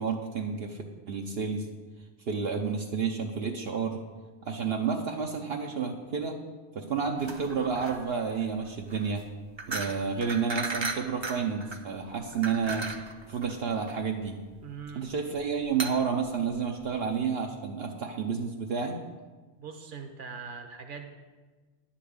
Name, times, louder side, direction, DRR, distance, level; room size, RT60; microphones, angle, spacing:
voice 1, 0.0-1.7 2.3-4.0 4.4-6.4 6.7-9.2 9.7-12.9 13.3-14.4 14.9-19.0, right 6 dB, 70° right, 1 dB, 1.1 m, -30 dB
sound 1, 7.2-17.2, right 3 dB, 30° right, 0.7 m, -38 dB
voice 2, 14.6-15.1 19.6-21.1, right 5 dB, 55° right, 5 dB, 1.2 m, -41 dB
11.0 x 5.9 x 8.6 m, 1.3 s
omnidirectional pair, 1.1 m